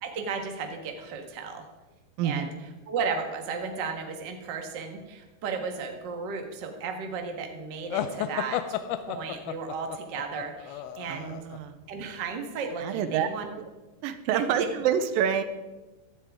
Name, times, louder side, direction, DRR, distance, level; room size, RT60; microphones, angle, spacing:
voice 1, 0.0-1.6 2.2-2.5 2.9-8.8 9.1-11.4 11.9-13.5 14.2-14.4, right 5 dB, 50° right, 4 dB, 1.4 m, -34 dB
voice 2, 2.2-2.5 11.1-11.8 12.8-13.3 13.6-13.7 14.0-15.4, right 9 dB, 90° right, 10 dB, 2.5 m, -27 dB
sound 1, 7.9-11.6, left 10 dB, 75° left, 2.1 m, -33 dB
17.0 x 12.0 x 3.6 m, 1.2 s
omnidirectional pair, 4.1 m